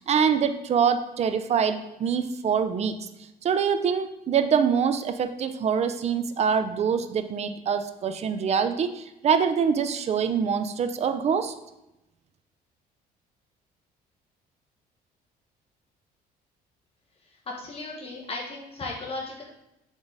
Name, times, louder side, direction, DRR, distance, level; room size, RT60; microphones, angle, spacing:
voice 1, 0.1-2.9 3.4-11.5, right 7 dB, 40° right, 9 dB, 0.5 m, -24 dB
voice 2, 17.6-19.4, left 2 dB, 35° left, -2 dB, 1.2 m, -35 dB
7.1 x 3.8 x 3.9 m, 0.89 s
cardioid pair, 110°, 17 cm